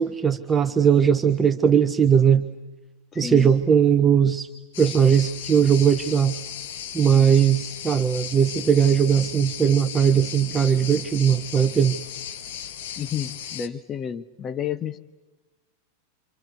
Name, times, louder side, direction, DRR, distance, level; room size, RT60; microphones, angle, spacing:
voice 1, 0.0-2.4 3.2-4.5 4.8-6.4 6.9-12.0, right 7 dB, 15° right, 9 dB, 0.9 m, -19 dB
voice 2, 3.1-3.5 13.0-15.0, left 8 dB, 25° left, 12 dB, 0.9 m, -31 dB
sound 1, 4.7-13.7, left 9 dB, 55° left, 1.3 m, -36 dB
28.0 x 27.0 x 7.0 m, 1.2 s
figure-of-eight pair, 90°, 0 cm